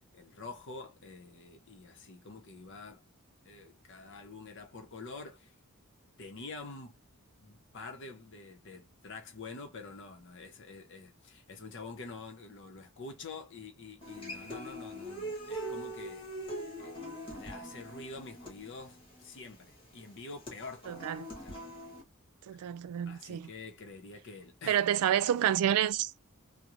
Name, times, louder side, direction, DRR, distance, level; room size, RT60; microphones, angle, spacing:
voice 1, 0.0-3.0 3.4-5.5 6.2-7.0 7.4-16.3 16.5-17.0 17.3-21.7 23.1-24.8, left 3 dB, 55° left, 0.7 m, -47 dB
Human voice / Acoustic guitar, 14.0-22.0, right 1 dB, 25° left, 1.1 m, -42 dB
voice 2, 20.9-21.3 22.5-23.5 24.7-26.2, right 10 dB, 80° right, 0.3 m, -29 dB
3.0 x 2.1 x 2.4 m
head